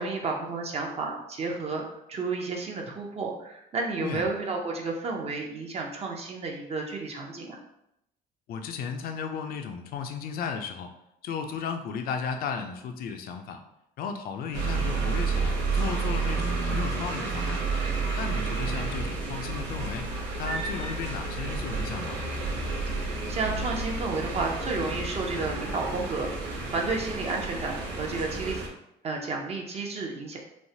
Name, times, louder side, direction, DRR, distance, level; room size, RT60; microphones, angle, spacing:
voice 1, 0.0-1.8 2.1-7.6 22.9-28.6 29.0-30.4, right 3 dB, 40° right, 1 dB, 0.5 m, -32 dB
voice 2, 8.5-10.9 11.2-13.6 14.0-17.6 18.2-22.2, left 6 dB, 60° left, 6 dB, 0.4 m, -35 dB
sound 1, 14.5-28.7, right 3 dB, 90° right, 0.6 m, -30 dB
3.1 x 2.0 x 2.7 m, 0.80 s
cardioid pair, 110°, 17 cm